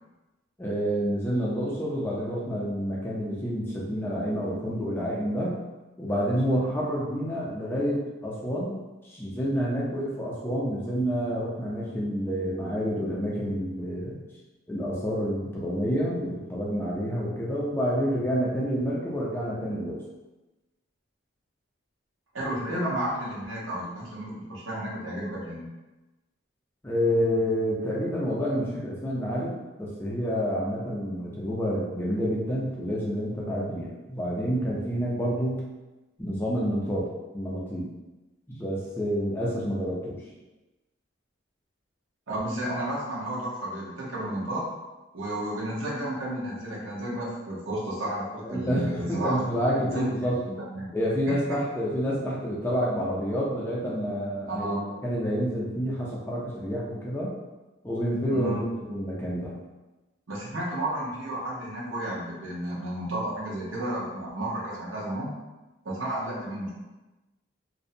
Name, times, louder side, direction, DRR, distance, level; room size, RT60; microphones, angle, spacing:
voice 1, 0.6-5.6 6.0-8.8 9.0-14.2 14.7-20.0 26.8-35.6 36.2-37.1 37.3-37.9 38.5-40.2 48.4-50.4 50.9-54.8 55.0-57.3 57.8-59.6, equal, 10° left, -5 dB, 0.4 m, -28 dB
voice 2, 22.3-25.7 42.3-44.7 45.1-49.4 49.9-50.9 51.5-51.6 54.5-54.8 58.3-58.6 60.3-65.3 65.8-66.7, right 1 dB, 75° right, -5 dB, 0.8 m, -32 dB
2.5 x 2.1 x 2.6 m, 1.1 s
head